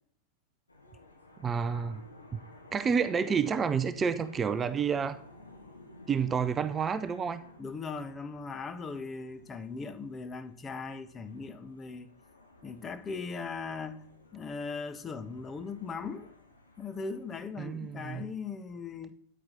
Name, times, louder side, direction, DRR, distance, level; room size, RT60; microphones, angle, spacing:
sound 1, 0.7-18.2, left 2 dB, 80° left, 1.6 m, -54 dB
voice 1, 1.4-2.0 2.7-5.2 6.1-7.4 17.6-18.2, right 6 dB, 20° right, 0.5 m, -29 dB
voice 2, 7.6-12.1 12.6-14.0 14.3-16.3 16.8-19.1, left 4 dB, 20° left, 0.8 m, -39 dB
9.3 x 8.6 x 4.1 m
figure-of-eight pair, 90°, 0 cm